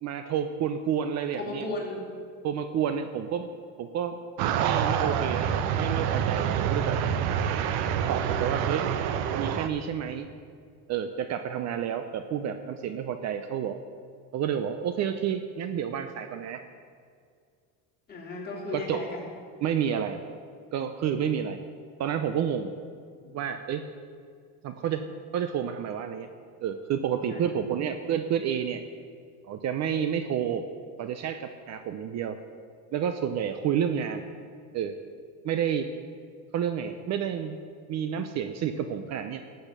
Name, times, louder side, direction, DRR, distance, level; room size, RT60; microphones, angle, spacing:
voice 1, 0.0-1.7 2.4-3.5 3.8-4.2 4.5-7.0 8.1-8.9 9.4-10.3 10.9-13.8 14.3-16.6 18.7-19.0 19.6-20.2 20.7-21.6 22.0-22.7 23.3-23.8 24.6-25.1 25.3-26.3 26.6-28.8 29.5-30.7 31.0-32.4 32.9-34.3 34.7-34.9 35.4-35.9 36.5-37.6 37.9-39.4, right 8 dB, 45° right, 9 dB, 0.7 m, -30 dB
voice 2, 1.3-2.0 18.1-19.2 23.2-23.3 27.3-27.8, left 2 dB, 25° left, -3 dB, 3.5 m, -35 dB
sound 1, 4.4-9.7, right 8 dB, 80° right, 0.9 m, -27 dB
13.0 x 7.9 x 6.7 m, 2.2 s
cardioid pair, 135°, 39 cm